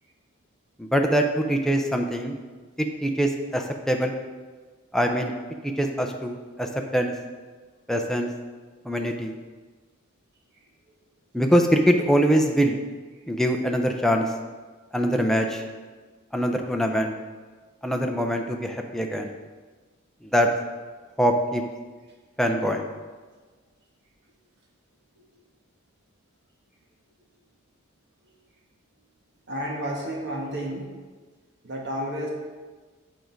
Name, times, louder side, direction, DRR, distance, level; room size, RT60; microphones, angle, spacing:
voice 1, 0.8-2.4 2.8-4.1 4.9-5.3 5.6-7.1 7.9-8.3 8.8-9.3 11.3-12.8 13.3-14.3 14.9-15.6 16.3-17.1 17.8-19.3 20.2-20.5 21.2-21.6 22.4-22.9, equal, ahead, 3 dB, 0.5 m, -23 dB
voice 2, 29.5-30.9 31.6-32.3, equal, 55° right, -2 dB, 1.5 m, -31 dB
7.8 x 5.0 x 4.6 m, 1.4 s
head